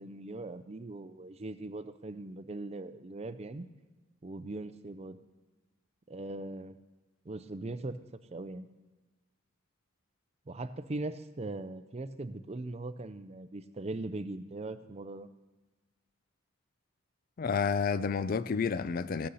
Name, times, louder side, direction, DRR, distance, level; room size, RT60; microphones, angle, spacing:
voice 1, 0.0-3.7 4.2-5.2 6.1-6.8 7.3-8.0 8.3-8.7 10.5-15.3, right 2 dB, 30° right, 0.5 m, -40 dB
voice 2, 17.4-19.3, left 5 dB, 45° left, 0.4 m, -30 dB
15.5 x 6.5 x 5.6 m
head